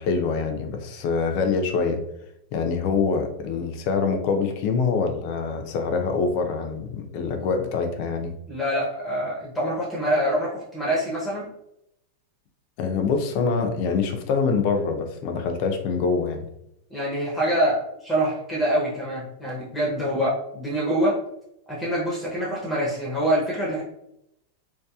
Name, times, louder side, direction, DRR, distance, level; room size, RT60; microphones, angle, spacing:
voice 1, 0.0-2.0 2.5-8.3 12.8-16.4, left 5 dB, 50° left, 5 dB, 0.5 m, -25 dB
voice 2, 8.5-11.5 16.9-21.2 21.7-23.8, equal, 10° left, -5 dB, 0.6 m, -25 dB
2.7 x 2.2 x 2.3 m, 0.79 s
supercardioid pair, 135°, 0 cm